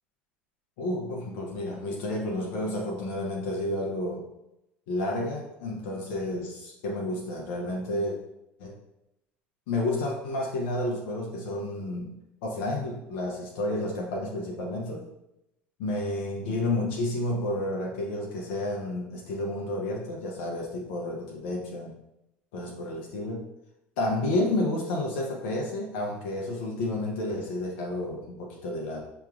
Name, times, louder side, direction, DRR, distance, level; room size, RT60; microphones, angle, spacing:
voice 1, 0.8-4.2 4.9-8.2 8.6-8.7 9.7-12.1 12.4-15.0 15.8-21.9 22.5-23.4 24.0-29.0, left 1 dB, 65° left, -2 dB, 0.8 m, -31 dB
5.6 x 3.0 x 2.4 m, 0.87 s
hypercardioid pair, 70°, 6 cm